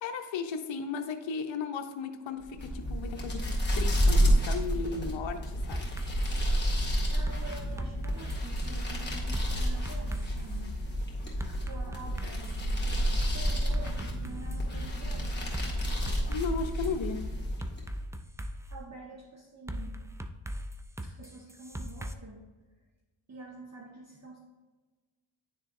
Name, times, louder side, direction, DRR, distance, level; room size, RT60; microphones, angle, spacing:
voice 1, 0.0-5.8 16.3-17.2, left 5 dB, 65° left, 6 dB, 0.7 m, -35 dB
sound 1, 2.4-18.0, equal, 20° left, 1.9 m, -30 dB
sound 2, 5.7-6.4 7.3-8.7 9.3-10.5 11.4-12.7 13.2-14.6 15.5-16.9 17.6-18.8 19.7-22.1, equal, 5° right, 0.3 m, -39 dB
voice 2, 7.1-10.7 11.6-15.4 18.7-20.0 21.0-22.4 23.3-24.4, right 3 dB, 35° right, -3 dB, 1.1 m, -47 dB
9.9 x 3.6 x 2.6 m, 1.3 s
cardioid pair, 55°, 48 cm